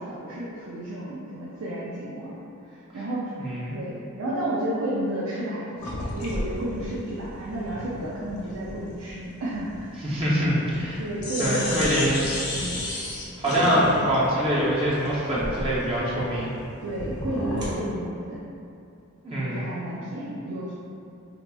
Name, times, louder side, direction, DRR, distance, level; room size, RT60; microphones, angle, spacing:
voice 1, 0.0-2.4 2.9-3.4 3.7-9.9 11.0-12.1 12.5-12.8 13.6-13.9 16.8-18.4 19.4-20.7, right 1 dB, 80° right, -7 dB, 0.5 m, -32 dB
voice 2, 3.4-3.8 10.0-11.0 11.4-12.3 13.4-16.5 19.2-19.7, equal, 25° right, -9 dB, 0.6 m, -24 dB
sound 1, 5.8-10.9 11.2-17.8, left 1 dB, 80° left, 0.7 m, -34 dB
sound 2, 11.0-12.4 13.9-16.4 16.6-16.7 17.3-17.8, equal, 55° right, 1.3 m, -38 dB
3.9 x 2.9 x 2.2 m, 2.6 s
head